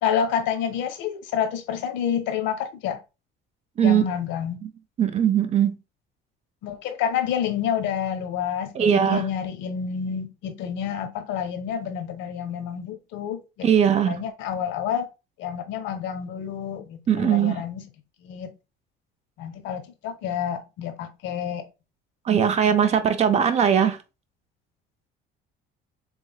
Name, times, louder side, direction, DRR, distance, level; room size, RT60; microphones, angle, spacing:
voice 1, 0.0-3.0 3.8-4.6 6.6-15.1 15.4-17.8 18.2-18.5 19.4-21.6, left 8 dB, 70° left, 0.7 m, -29 dB
voice 2, 5.0-5.8 8.8-9.2 13.6-14.1 17.1-17.6 22.3-24.0, right 8 dB, 35° right, 0.5 m, -20 dB
3.7 x 3.1 x 2.3 m
cardioid pair, 130°, 20 cm